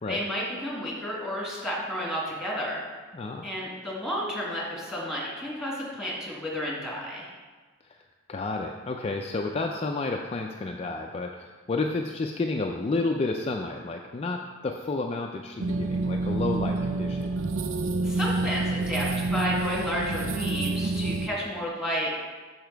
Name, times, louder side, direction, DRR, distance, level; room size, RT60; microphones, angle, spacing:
voice 1, 0.1-2.8 3.4-7.3 18.0-22.1, equal, 5° right, -5 dB, 2.0 m, -31 dB
voice 2, 3.1-3.5 7.9-8.0 8.3-17.3, left 3 dB, 30° left, 2 dB, 0.4 m, -31 dB
sound 1, 15.6-21.3, right 2 dB, 70° right, 0.5 m, -28 dB
6.9 x 6.3 x 4.5 m, 1.4 s
head